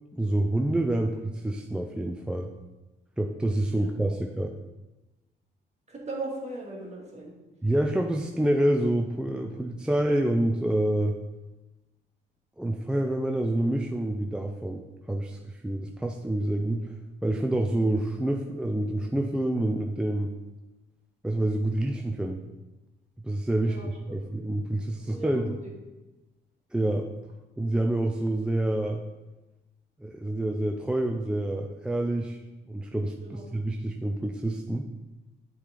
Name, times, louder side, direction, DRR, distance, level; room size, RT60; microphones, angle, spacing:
voice 1, 0.1-2.5 3.2-4.5 7.6-11.2 12.6-16.9 17.2-20.3 21.2-22.4 23.2-25.6 26.7-27.1 27.6-29.0 30.0-32.4 32.7-34.9, right 1 dB, 5° right, 2 dB, 0.4 m, -27 dB
voice 2, 3.7-4.2 5.9-7.3 23.6-24.3 25.0-25.7 33.2-33.4, right 2 dB, 35° right, -2 dB, 1.9 m, -39 dB
7.0 x 3.9 x 4.9 m, 1.1 s
cardioid pair, 90°, 20 cm